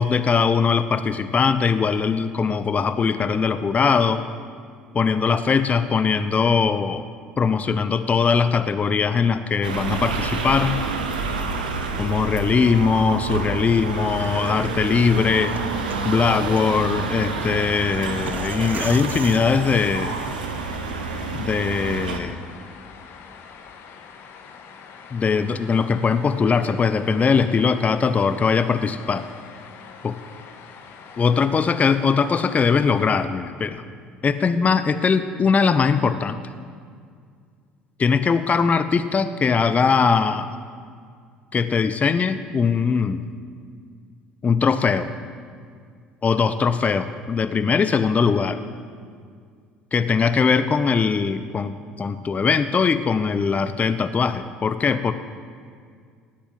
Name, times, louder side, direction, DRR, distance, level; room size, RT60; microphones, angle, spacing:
voice 1, 0.0-4.2 4.9-7.0 7.4-10.8 12.0-15.5 16.0-20.2 21.3-22.4 25.1-29.3 30.0-30.2 31.2-33.8 34.2-36.4 38.0-40.6 41.5-43.3 44.4-45.1 46.2-48.6 49.9-55.1, left 5 dB, 35° left, 11 dB, 0.9 m, -21 dB
sound 1, 9.6-22.2, right 4 dB, 85° right, 1.2 m, -28 dB
sound 2, 14.2-20.3, right 6 dB, 40° right, 0.9 m, -39 dB
sound 3, 14.8-33.1, left 6 dB, 60° left, 1.7 m, -44 dB
18.0 x 8.7 x 7.6 m, 2.1 s
hypercardioid pair, 60°, 5 cm